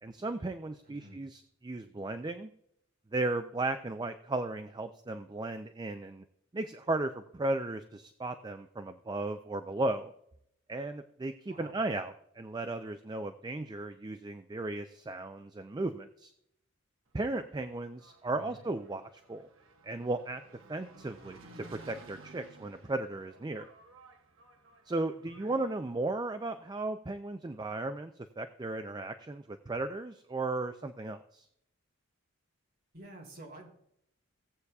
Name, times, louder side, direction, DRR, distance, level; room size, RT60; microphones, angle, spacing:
voice 1, 0.0-2.5 3.1-6.2 6.5-10.1 10.7-16.3 17.1-19.5 19.8-20.4 20.7-23.7 24.9-28.1 28.4-31.5, right 2 dB, 20° right, 9 dB, 0.4 m, -35 dB
voice 2, 0.8-1.2 11.5-11.8 18.2-18.6 25.4-25.6 32.9-33.7, right 1 dB, 50° right, -1 dB, 3.5 m, -50 dB
Engine, 17.1-25.9, right 2 dB, 65° right, 1.2 m, -56 dB
17.0 x 8.1 x 2.3 m, 0.73 s
head